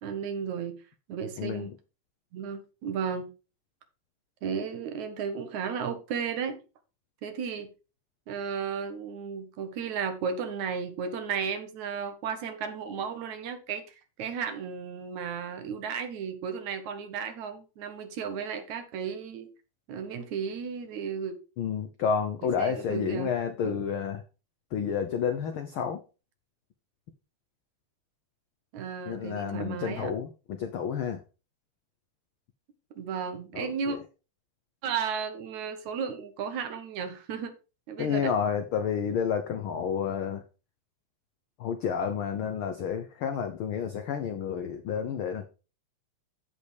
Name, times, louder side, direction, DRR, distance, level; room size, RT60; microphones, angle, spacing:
voice 1, 0.0-0.8 1.1-1.7 2.3-3.3 4.4-6.6 7.2-7.7 8.3-19.5 19.9-21.4 22.4-23.3 23.6-23.8 28.7-30.1 33.0-34.0 34.8-37.6 37.9-38.3, right 6 dB, 75° right, 2.7 m, -34 dB
voice 2, 1.4-1.7 21.6-24.2 24.7-26.0 29.1-31.2 33.5-34.0 38.0-40.4 41.6-45.5, left 7 dB, 85° left, 1.1 m, -30 dB
14.5 x 5.4 x 3.4 m
omnidirectional pair, 3.4 m